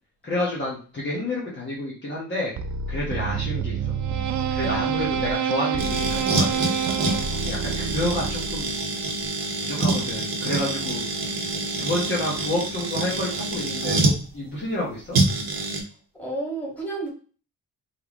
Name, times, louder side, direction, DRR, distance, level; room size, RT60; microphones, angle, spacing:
voice 1, 0.2-2.5 2.9-4.0 4.5-6.8 7.5-8.8 9.6-11.4 11.8-15.2, left 1 dB, 30° left, -6 dB, 1.5 m, -29 dB
sound 1, 2.6-8.8, right 7 dB, 55° right, 0.5 m, -27 dB
sound 2, 5.8-14.2 15.1-15.8, right 2 dB, 80° right, 1.5 m, -26 dB
voice 2, 16.2-17.1, right 2 dB, 5° left, -6 dB, 2.1 m, -31 dB
4.7 x 3.5 x 3.1 m, 0.38 s
wide cardioid pair, 165°, 35 cm